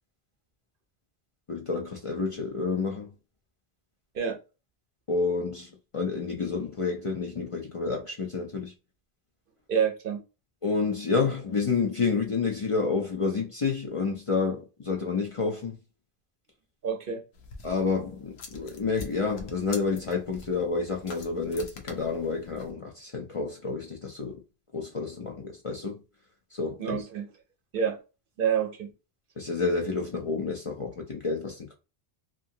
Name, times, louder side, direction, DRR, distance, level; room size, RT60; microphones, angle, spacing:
voice 1, 1.5-3.1 5.1-8.7 10.6-15.8 17.6-24.4 24.7-26.0 26.5-27.0 29.4-31.7, left 4 dB, 40° left, 0.5 m, -29 dB
voice 2, 9.7-10.2 16.8-17.2 26.8-27.3 27.7-28.0 28.4-28.9, right 7 dB, 65° right, 0.8 m, -27 dB
sound 1, 17.3-22.7, left 3 dB, 85° left, 0.9 m, -45 dB
2.7 x 2.6 x 2.6 m
omnidirectional pair, 1.0 m